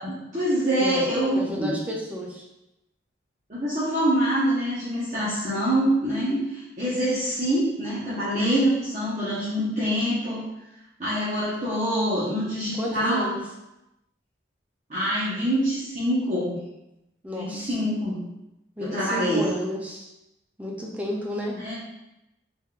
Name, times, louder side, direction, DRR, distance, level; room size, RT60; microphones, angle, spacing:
voice 1, 0.0-1.8 3.5-10.4 11.0-13.3 14.9-16.6 17.4-18.2 18.8-19.5 21.6-21.7, equal, 40° right, -12 dB, 1.1 m, -25 dB
voice 2, 1.4-2.5 12.8-13.4 17.2-17.8 18.8-20.1 20.6-21.6, equal, 10° right, -2 dB, 0.5 m, -32 dB
4.1 x 3.8 x 2.4 m, 0.91 s
head